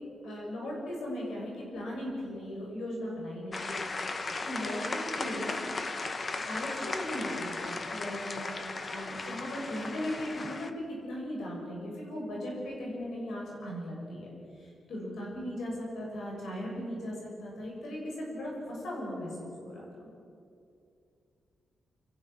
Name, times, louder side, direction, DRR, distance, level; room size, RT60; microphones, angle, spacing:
voice 1, 0.2-3.8 4.4-5.7 6.4-14.3 14.6-20.1, left 1 dB, 80° left, -3 dB, 7.2 m, -38 dB
sound 1, 3.5-10.7, left 3 dB, 35° left, 1.3 m, -36 dB
25.5 x 15.0 x 7.5 m, 2.5 s
cardioid pair, 105°, 0 cm